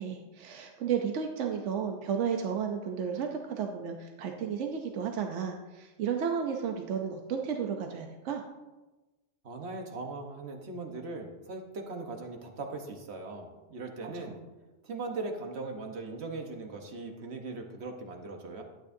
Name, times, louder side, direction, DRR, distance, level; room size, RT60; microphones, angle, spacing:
voice 1, 0.0-8.4 14.0-14.3, right 7 dB, 85° right, 3 dB, 1.0 m, -33 dB
voice 2, 9.4-14.4 14.8-18.6, right 3 dB, 65° right, 3 dB, 1.3 m, -39 dB
11.5 x 9.0 x 2.6 m, 1.1 s
omnidirectional pair, 1.2 m